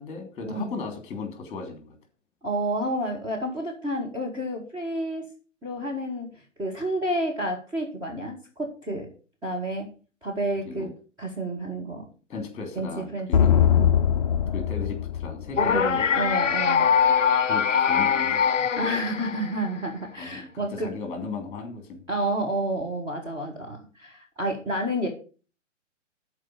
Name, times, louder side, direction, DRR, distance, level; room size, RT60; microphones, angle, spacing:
voice 1, 0.0-1.9 10.6-10.9 12.3-13.5 14.5-16.1 17.4-18.7 20.2-22.1, left 4 dB, 15° left, 6 dB, 3.0 m, -36 dB
voice 2, 2.4-5.3 5.6-6.3 6.6-9.1 9.4-9.9 10.2-10.9 11.2-12.0 12.7-13.3 13.7-13.9 15.6-16.9 18.7-20.9 22.1-25.1, right 1 dB, 10° right, -3 dB, 1.6 m, -30 dB
sound 1, 13.3-16.0, left 9 dB, 30° left, 0.5 m, -21 dB
sound 2, 15.6-19.7, left 7 dB, 75° left, 0.6 m, -22 dB
13.0 x 4.8 x 6.3 m, 0.37 s
figure-of-eight pair, 125°, 38 cm